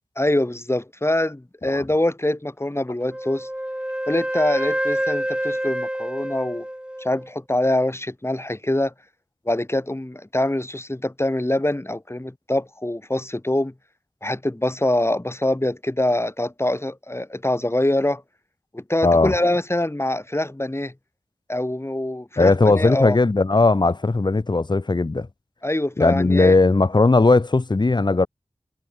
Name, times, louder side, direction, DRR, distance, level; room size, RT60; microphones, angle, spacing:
voice 1, 0.2-3.5 4.1-6.6 7.0-8.9 9.5-13.7 14.2-18.2 18.7-20.9 21.5-23.2 25.6-26.6, left 1 dB, 20° left, 2.0 m, -24 dB
Wind instrument woodwind instrument, 3.1-7.3, equal, 10° right, 3.3 m, -27 dB
voice 2, 19.0-19.3 22.4-25.3 26.0-28.3, left 3 dB, 40° left, 0.8 m, -18 dB
wide cardioid pair, 50°, 11 cm